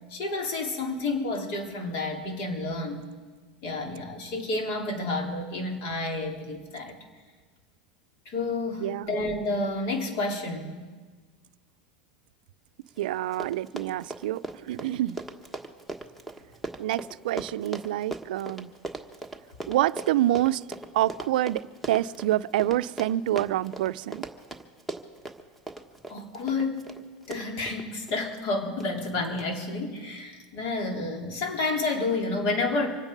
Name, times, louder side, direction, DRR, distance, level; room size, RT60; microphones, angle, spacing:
voice 1, 0.1-3.0 3.6-7.0 8.3-10.8 26.1-27.0 27.3-32.9, left 2 dB, 60° left, 1 dB, 3.5 m, -30 dB
voice 2, 8.8-9.2 13.0-15.2 16.8-18.7 19.7-20.6 20.9-21.6 21.9-24.2, right 14 dB, 80° right, 15 dB, 0.4 m, -27 dB
Run, 13.0-13.1 13.2-28.2 28.8-29.1 29.4-29.5, right 2 dB, ahead, 1.4 m, -39 dB
26.0 x 9.0 x 5.3 m, 1.4 s
supercardioid pair, 120°, 5 cm